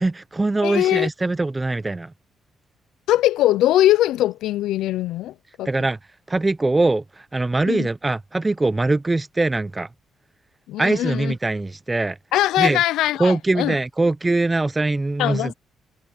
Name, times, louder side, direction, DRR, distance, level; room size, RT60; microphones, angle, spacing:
voice 1, 0.0-2.1 5.6-6.0 6.3-9.9 10.8-12.2 12.6-12.8 13.2-15.5, right 2 dB, 20° right, 0.8 m, -22 dB
voice 2, 0.6-1.1 3.1-5.7 7.7-7.9 10.7-11.3 12.3-13.7 15.2-15.5, left 14 dB, 90° left, 0.5 m, -21 dB
cardioid pair, 90°, 0 cm